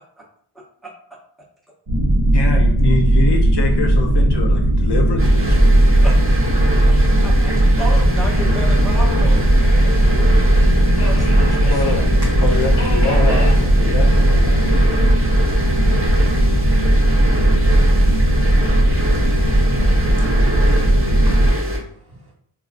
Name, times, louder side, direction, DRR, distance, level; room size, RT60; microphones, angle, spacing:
sound 1, 1.9-21.5, right 1 dB, 80° right, 1.0 m, -16 dB
voice 1, 2.3-5.7 11.7-12.0 12.4-15.1, left 3 dB, 55° left, 2 dB, 0.5 m, -25 dB
sound 2, 5.2-21.8, equal, 25° right, 0.8 m, -22 dB
voice 2, 7.2-10.3, right 1 dB, ahead, -3 dB, 0.7 m, -31 dB
Subway metro underground, 8.1-21.1, left 2 dB, 35° left, 0.9 m, -37 dB
voice 3, 21.2-22.3, equal, 50° right, -3 dB, 1.2 m, -46 dB
3.9 x 2.3 x 2.4 m, 0.64 s
wide cardioid pair, 90°, 50 cm